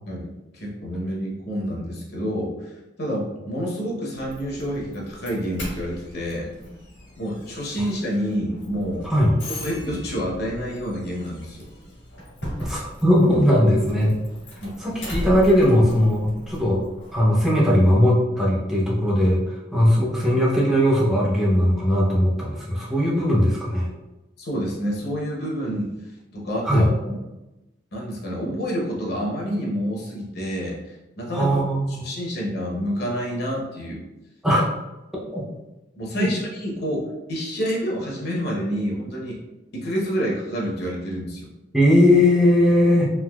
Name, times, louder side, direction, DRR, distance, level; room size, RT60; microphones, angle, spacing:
voice 1, 0.1-6.5 7.2-9.1 9.6-11.7 12.6-12.7 14.6-14.8 24.4-25.9 26.3-27.2 27.9-31.6 31.9-34.0 36.0-39.4 39.7-41.5, equal, 60° left, -2 dB, 0.8 m, -28 dB
Doorbell, 4.1-17.3, equal, 85° left, 1.5 m, -37 dB
voice 2, 12.6-14.1 14.8-16.8 17.1-23.9 26.6-26.9 31.3-32.1 34.4-34.6 35.3-35.4 36.1-36.3 41.7-43.1, left 1 dB, ahead, -5 dB, 0.5 m, -19 dB
3.4 x 2.7 x 2.3 m, 1.0 s
head